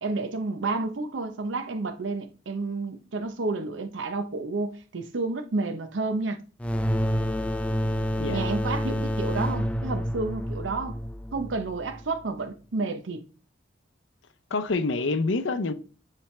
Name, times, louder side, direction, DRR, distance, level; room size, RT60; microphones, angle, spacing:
voice 1, 0.0-6.4 8.3-11.0 11.3-13.2, right 3 dB, 85° right, 0.7 m, -30 dB
sound 1, 6.6-12.0, equal, 5° left, 0.4 m, -28 dB
voice 2, 8.2-8.5 14.5-15.7, left 3 dB, 80° left, 0.6 m, -27 dB
10.0 x 3.4 x 3.2 m
head